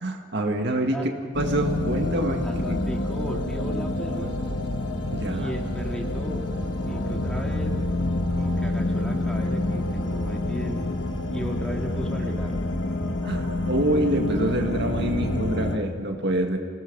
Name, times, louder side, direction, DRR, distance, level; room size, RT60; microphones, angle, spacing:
voice 1, 0.0-2.8 5.1-5.5 13.2-16.6, right 1 dB, 55° right, 3 dB, 1.9 m, -26 dB
sound 1, 1.3-15.8, left 1 dB, 65° left, 1.6 m, -27 dB
voice 2, 2.4-4.4 5.2-6.4 6.8-7.8 8.3-10.9 11.3-12.7, equal, 5° left, 0 dB, 2.5 m, -35 dB
26.5 x 19.0 x 5.5 m, 2.2 s
head